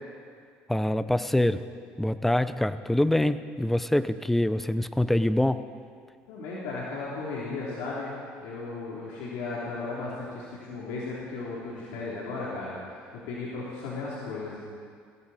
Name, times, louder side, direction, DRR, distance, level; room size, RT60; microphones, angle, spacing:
voice 1, 0.7-1.7 2.0-5.7, left 1 dB, 5° left, 13 dB, 0.6 m, -25 dB
voice 2, 6.3-8.1 8.4-12.8 13.1-14.6, left 3 dB, 85° left, -6 dB, 3.2 m, -35 dB
21.5 x 16.0 x 4.2 m, 2.1 s
supercardioid pair, 105°, 5 cm